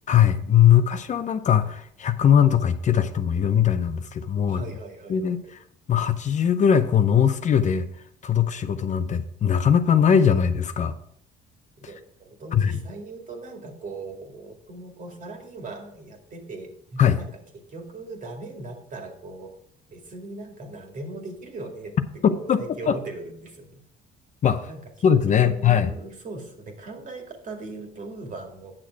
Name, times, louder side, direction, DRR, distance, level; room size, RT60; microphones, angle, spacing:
voice 1, 0.1-4.6 5.1-5.6 5.9-7.9 8.2-10.9 12.5-12.8 17.0-17.2 22.2-22.6 22.9-23.0 24.4-24.7 25.0-25.9, left 8 dB, 45° left, 10 dB, 0.7 m, -20 dB
voice 2, 4.5-5.5 11.8-17.3 17.7-19.5 19.9-21.9 22.3-23.7 24.7-28.7, right 2 dB, 45° right, 3 dB, 2.1 m, -39 dB
8.8 x 6.5 x 4.6 m, 0.68 s
cardioid pair, 95°, 18 cm